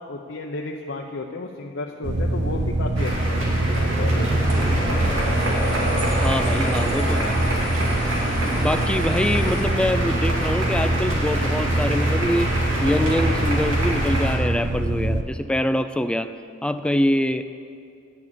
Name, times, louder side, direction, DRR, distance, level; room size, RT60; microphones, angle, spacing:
voice 1, 0.1-4.4 8.7-8.9, left 3 dB, 70° left, 1 dB, 0.7 m, -33 dB
sound 1, 2.0-15.2, right 1 dB, 60° right, 0.7 m, -24 dB
sound 2, 2.9-14.3, equal, 90° right, 2.4 m, -27 dB
sound 3, 4.4-9.6, right 1 dB, 40° right, 2.8 m, -37 dB
voice 2, 6.2-7.4 8.4-12.5 12.8-16.3 16.6-17.4, left 1 dB, 5° left, 10 dB, 0.3 m, -24 dB
9.6 x 6.8 x 8.8 m, 2.3 s
head